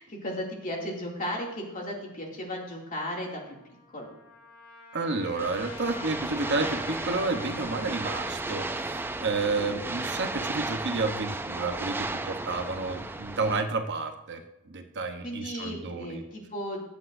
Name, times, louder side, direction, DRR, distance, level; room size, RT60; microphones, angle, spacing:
voice 1, 0.0-3.6 3.9-4.1 9.6-9.8 15.2-16.8, equal, 35° left, -2 dB, 2.4 m, -35 dB
Trumpet, 3.3-8.4, left 3 dB, 85° left, 2.6 m, -46 dB
voice 2, 4.9-16.2, right 3 dB, 50° right, 6 dB, 0.8 m, -31 dB
sound 1, 5.4-13.6, right 2 dB, 10° right, 0.4 m, -34 dB
21.5 x 7.9 x 2.6 m, 0.90 s
head